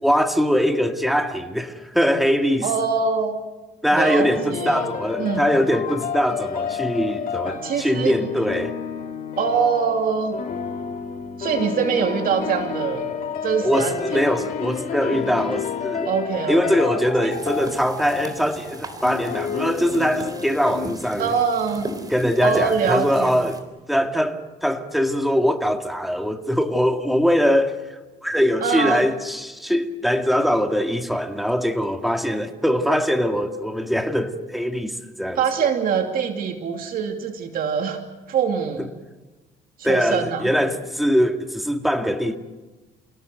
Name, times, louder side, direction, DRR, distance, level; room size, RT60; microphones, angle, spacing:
voice 1, 0.0-2.7 3.8-8.8 13.6-16.1 16.5-21.3 22.1-35.4 38.8-38.9 39.8-42.4, equal, ahead, 2.2 m, -22 dB
voice 2, 2.6-3.4 3.9-4.8 5.2-5.5 7.6-8.1 9.4-10.3 11.4-13.1 13.4-14.2 16.0-16.8 17.2-17.3 21.2-21.9 22.4-23.4 28.6-29.1 35.4-38.0 38.3-38.9 39.8-40.5, right 6 dB, 60° right, 2.7 m, -24 dB
sound 1, 4.2-21.1, left 7 dB, 55° left, 3.0 m, -30 dB
sound 2, 17.3-23.6, right 2 dB, 20° right, 3.9 m, -37 dB
29.5 x 17.5 x 8.1 m
cardioid pair, 110°, 17 cm